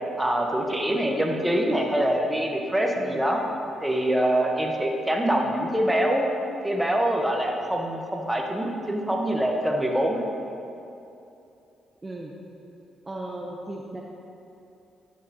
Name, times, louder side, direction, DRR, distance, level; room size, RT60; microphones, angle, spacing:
voice 1, 0.2-3.4 3.8-6.3 6.6-10.2, right 1 dB, 10° right, 1 dB, 1.3 m, -24 dB
voice 2, 12.0-12.3 13.0-14.0, right 2 dB, 30° right, -1 dB, 0.8 m, -36 dB
10.5 x 7.6 x 3.0 m, 2.8 s
hypercardioid pair, 45°, 0 cm